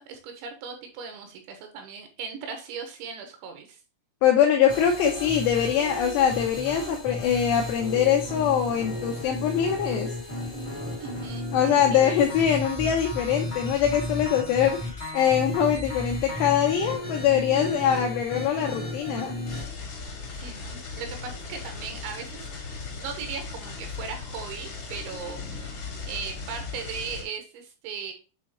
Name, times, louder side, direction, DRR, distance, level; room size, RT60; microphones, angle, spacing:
voice 1, 0.0-3.8 11.0-12.3 17.5-17.8 20.3-22.5 22.9-28.1, right 6 dB, 75° right, 5 dB, 3.1 m, -38 dB
voice 2, 4.2-10.1 11.5-19.4, left 9 dB, 80° left, 2 dB, 2.5 m, -23 dB
sound 1, 4.7-19.6, left 1 dB, 25° left, 0.6 m, -33 dB
sound 2, 19.4-27.2, left 4 dB, 50° left, 1.7 m, -38 dB
8.6 x 3.8 x 2.9 m, 0.34 s
omnidirectional pair, 5.7 m